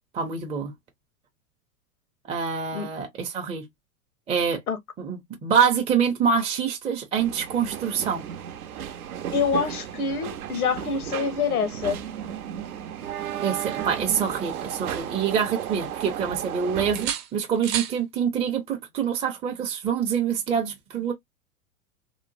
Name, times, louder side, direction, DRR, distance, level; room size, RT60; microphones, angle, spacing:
voice 1, 0.1-0.7 2.3-3.7 4.3-4.6 5.0-8.2 13.4-21.1, right 7 dB, 15° right, 0.5 m, -25 dB
sound 1, 7.2-17.1, right 10 dB, 85° right, 0.7 m, -34 dB
voice 2, 9.3-12.0, left 6 dB, 90° left, 1.0 m, -26 dB
sound 2, 14.3-15.3 15.7-16.5 16.9-18.0 19.9-20.1, right 10 dB, 45° right, 0.8 m, -35 dB
2.9 x 2.0 x 2.5 m
hypercardioid pair, 110°, 43 cm